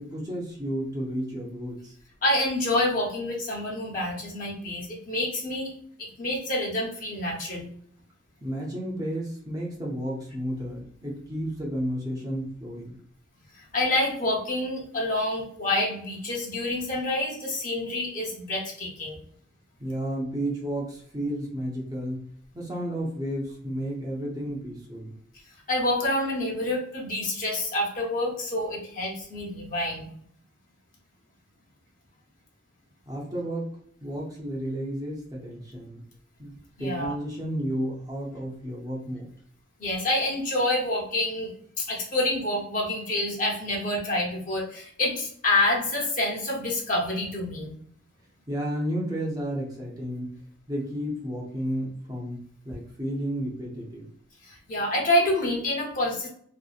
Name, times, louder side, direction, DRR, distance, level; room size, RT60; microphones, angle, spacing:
voice 1, 0.0-1.9 8.4-13.0 19.8-22.3 22.5-25.1 33.1-33.7 34.0-36.0 36.4-36.5 36.8-39.3 48.5-50.3 50.7-54.1, equal, 20° right, -3 dB, 0.5 m, -32 dB
voice 2, 2.2-5.7 6.0-7.7 13.5-19.2 25.7-30.1 36.8-37.1 39.8-47.8 54.4-56.3, left 1 dB, 45° left, -2 dB, 0.8 m, -27 dB
2.7 x 2.0 x 2.3 m, 0.63 s
head